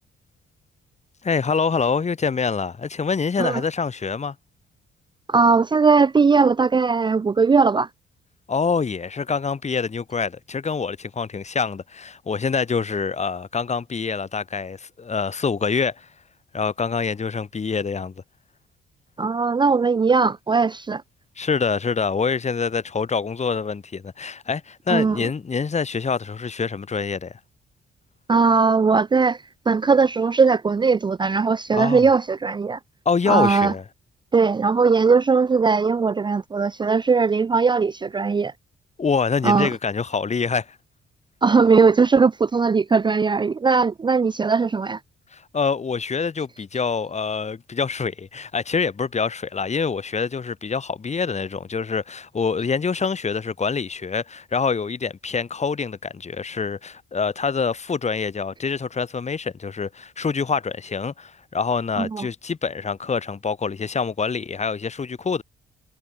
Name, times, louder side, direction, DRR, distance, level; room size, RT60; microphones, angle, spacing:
voice 1, 1.2-4.3 8.5-16.1 16.5-18.1 21.4-27.4 31.7-32.0 33.0-33.8 39.0-40.8 45.3-65.4, left 5 dB, 35° left, 3.2 m, -25 dB
voice 2, 5.3-7.9 19.2-21.0 24.9-25.3 28.3-29.4 29.7-32.8 33.3-33.7 34.3-38.5 39.4-39.7 41.4-45.0 62.0-62.3, right 4 dB, 25° right, 0.5 m, -19 dB
cardioid pair, 90°, 20 cm